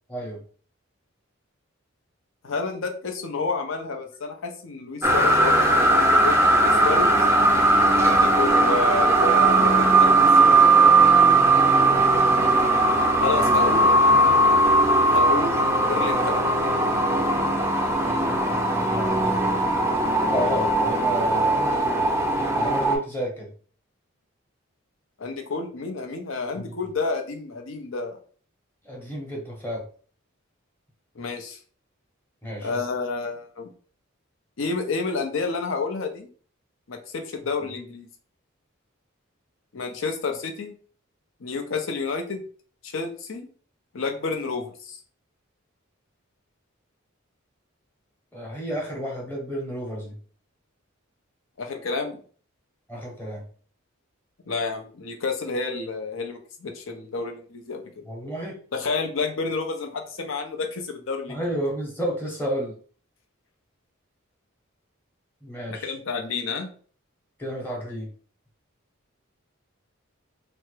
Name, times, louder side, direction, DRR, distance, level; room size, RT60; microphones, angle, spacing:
voice 1, 0.1-0.4 13.4-13.7 14.1-14.4 18.0-19.4 20.3-22.0 22.5-23.5 26.5-26.7 28.8-29.8 32.4-32.7 37.6-37.7 48.3-50.2 52.9-53.4 58.1-58.6 61.3-62.7 65.4-65.9 67.4-68.1, equal, 10° left, -2 dB, 0.9 m, -32 dB
voice 2, 2.4-7.1 7.9-10.6 13.2-13.9 15.1-16.4 25.2-28.2 31.2-31.6 32.6-33.7 34.6-36.3 36.9-38.1 39.7-40.7 41.4-42.4 42.8-43.5 43.9-45.0 51.6-52.2 54.5-57.8 58.7-61.4 65.7-66.7, left 4 dB, 70° left, 4 dB, 0.6 m, -30 dB
sound 1, 5.0-23.0, right 2 dB, 10° right, 0.4 m, -19 dB
3.4 x 2.0 x 3.1 m, 0.43 s
head